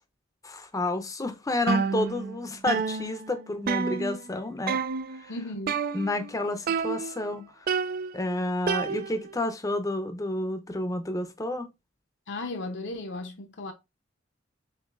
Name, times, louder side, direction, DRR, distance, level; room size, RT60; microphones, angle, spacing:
voice 1, 0.4-4.8 5.2-5.3 5.9-7.7 8.1-11.7, left 2 dB, 15° left, 0.6 m, -30 dB
sound 1, 1.7-2.4 2.7-4.4 4.7-5.2 5.7-6.3 6.7-7.3 7.7-9.4, right 5 dB, 50° right, 0.3 m, -30 dB
voice 2, 5.3-5.9 12.3-13.7, left 2 dB, 65° left, 0.7 m, -36 dB
7.1 x 2.7 x 2.5 m
head